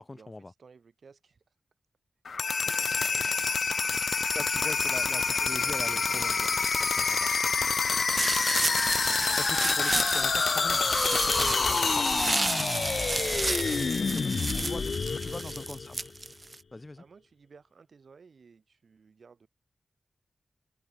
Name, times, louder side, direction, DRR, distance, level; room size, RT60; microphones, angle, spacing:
voice 1, 0.0-0.5 4.3-6.5 6.8-7.3 9.4-12.4 14.0-16.0 16.7-17.0, left 2 dB, 30° left, 1.7 m, -42 dB
voice 2, 0.6-1.4 2.6-4.1 5.0-5.8 8.4-8.8 13.1-13.5 14.5-15.6 17.0-19.5, right 5 dB, 70° right, 6.1 m, -55 dB
sound 1, 2.2-16.1, left 5 dB, 65° left, 0.6 m, -27 dB
sound 2, 8.2-16.6, right 3 dB, 35° right, 0.6 m, -31 dB
wide cardioid pair, 85°, 0 cm